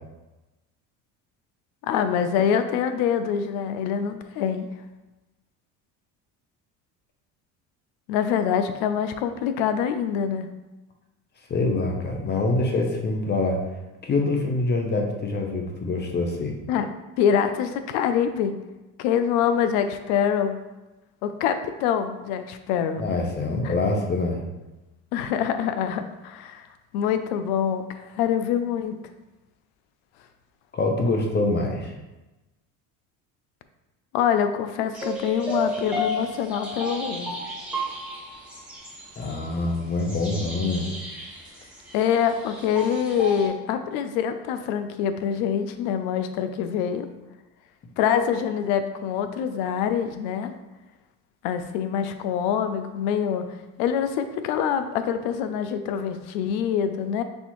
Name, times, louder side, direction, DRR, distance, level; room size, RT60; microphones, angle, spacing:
voice 1, 1.8-4.7 8.1-10.5 16.7-16.9 17.2-18.5 19.0-20.6 21.2-23.0 23.6-23.7 25.1-26.7 26.9-27.8 28.1-29.0 34.1-37.3 41.9-47.1 48.0-50.5 51.4-53.5 53.8-57.2, left 8 dB, 90° left, 9 dB, 0.5 m, -25 dB
voice 2, 11.5-13.6 14.0-16.6 23.0-24.4 30.7-31.9 39.2-40.9, left 2 dB, 30° left, 2 dB, 0.7 m, -25 dB
sound 1, 34.9-43.5, equal, 5° right, 1.1 m, -33 dB
4.3 x 3.3 x 3.0 m, 1.1 s
cardioid pair, 115°, 34 cm